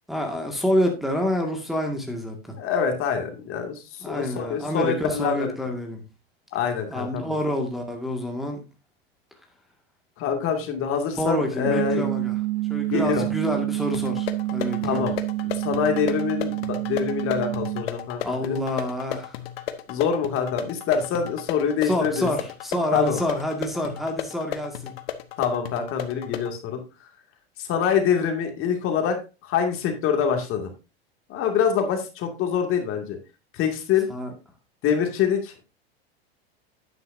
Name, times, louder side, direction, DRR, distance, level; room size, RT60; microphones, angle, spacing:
voice 1, 0.1-2.6 4.0-6.0 6.9-8.6 11.2-12.3 12.7-15.0 18.2-19.4 21.8-25.0 34.1-34.3, equal, ahead, 1.9 m, -27 dB
voice 2, 2.6-5.5 6.5-7.4 10.2-12.1 12.9-13.3 14.8-15.2 15.4-18.6 19.9-22.3 22.9-23.2 25.4-27.1 27.6-30.7 31.3-33.2 33.5-34.1 34.8-35.7, left 7 dB, 45° left, 2.3 m, -25 dB
sound 1, 11.6-17.8, right 19 dB, 80° right, 0.5 m, -28 dB
sound 2, 13.9-26.5, left 11 dB, 75° left, 1.2 m, -35 dB
10.0 x 9.3 x 2.7 m
hypercardioid pair, 105°, 31 cm